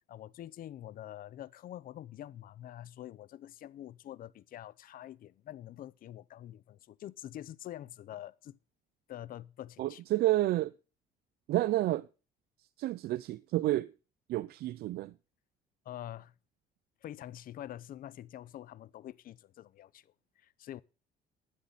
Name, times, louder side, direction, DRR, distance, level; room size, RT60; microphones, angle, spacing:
voice 1, 0.1-8.6 9.1-10.0 15.8-16.3 17.0-20.8, left 12 dB, 55° left, 0.7 m, -46 dB
voice 2, 9.8-10.7 11.5-12.1 12.8-13.9 14.3-15.1, right 16 dB, 65° right, 0.5 m, -30 dB
12.0 x 9.5 x 4.1 m
cardioid pair, 110°, 17 cm